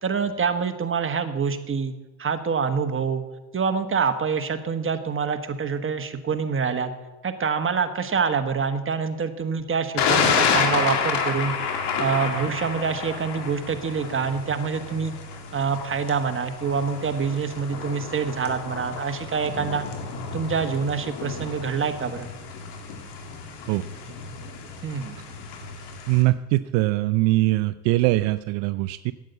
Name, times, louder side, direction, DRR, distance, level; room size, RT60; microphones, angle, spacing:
voice 1, 0.0-1.9 2.2-3.2 3.5-6.9 7.2-11.5 12.0-15.1 15.5-19.9 20.3-22.3 24.8-25.2, right 6 dB, 30° right, 7 dB, 1.4 m, -26 dB
Thunder, 10.0-26.2, left 6 dB, 65° left, 2.1 m, -30 dB
voice 2, 26.1-29.1, right 18 dB, 70° right, 14 dB, 0.5 m, -22 dB
9.1 x 8.4 x 7.9 m, 1.1 s
hypercardioid pair, 70°, 44 cm